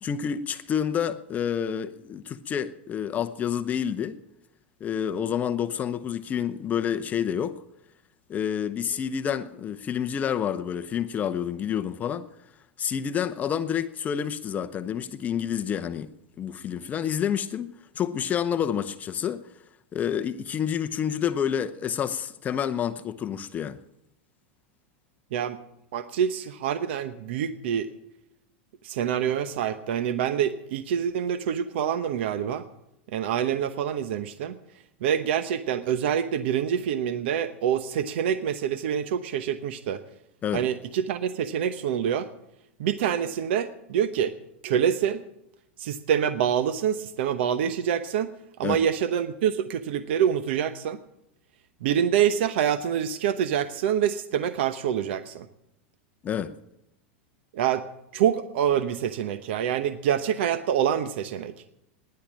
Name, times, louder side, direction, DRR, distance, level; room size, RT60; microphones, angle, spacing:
voice 1, 0.0-4.2 4.8-7.6 8.3-12.3 12.8-16.1 16.4-19.4 19.9-23.8 40.4-40.6 48.6-48.8 56.2-56.5, left 8 dB, 25° left, 0.7 m, -28 dB
voice 2, 25.9-27.9 28.8-32.6 33.1-34.6 35.0-40.0 40.5-42.3 42.8-44.3 44.6-45.2 45.8-48.3 48.6-51.0 51.8-55.5 57.5-57.8 58.1-61.5, right 9 dB, 70° right, 0.9 m, -26 dB
15.5 x 10.5 x 7.4 m
supercardioid pair, 135°, 6 cm